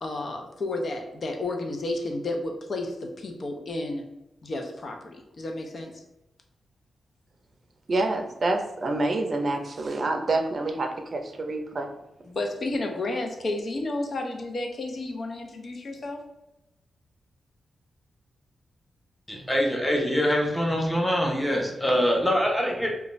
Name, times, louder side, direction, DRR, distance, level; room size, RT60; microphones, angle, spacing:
voice 1, 0.0-4.0 4.4-6.0 12.3-16.2, left 2 dB, 55° left, 3 dB, 0.5 m, -32 dB
voice 2, 7.9-11.9, right 2 dB, 55° right, 4 dB, 0.5 m, -27 dB
voice 3, 19.3-22.9, equal, 5° left, -1 dB, 0.7 m, -24 dB
2.5 x 2.2 x 3.0 m, 0.93 s
cardioid pair, 65°, 0 cm